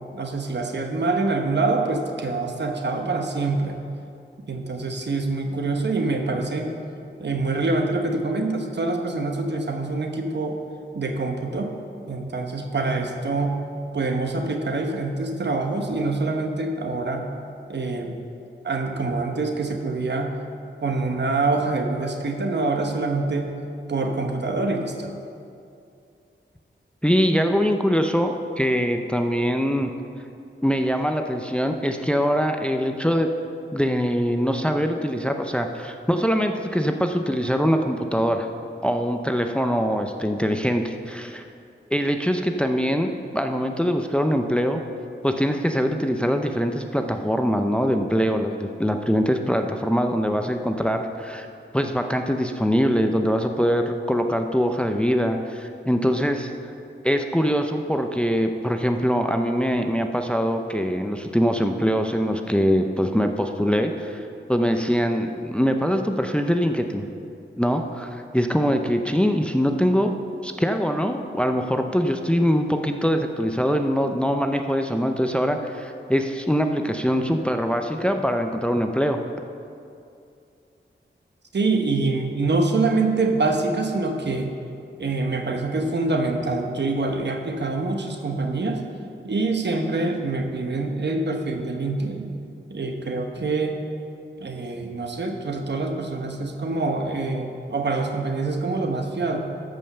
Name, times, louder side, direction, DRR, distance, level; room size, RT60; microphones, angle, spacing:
voice 1, 0.1-3.8 4.5-6.7 7.2-10.6 10.9-11.7 12.1-13.6 13.9-17.3 17.7-18.1 18.6-20.4 20.8-23.5 23.9-25.1 81.5-84.5 85.0-88.8 89.2-92.4 92.7-93.8 94.4-99.4, right 3 dB, 60° right, 4 dB, 1.1 m, -25 dB
voice 2, 27.0-29.9 30.6-33.3 33.7-38.5 38.8-41.4 41.9-44.8 45.2-51.5 51.7-56.5 57.0-67.0 67.6-70.1 70.4-79.2, equal, 5° left, 5 dB, 0.6 m, -23 dB
13.0 x 5.4 x 6.7 m, 2.5 s
wide cardioid pair, 90°, 20 cm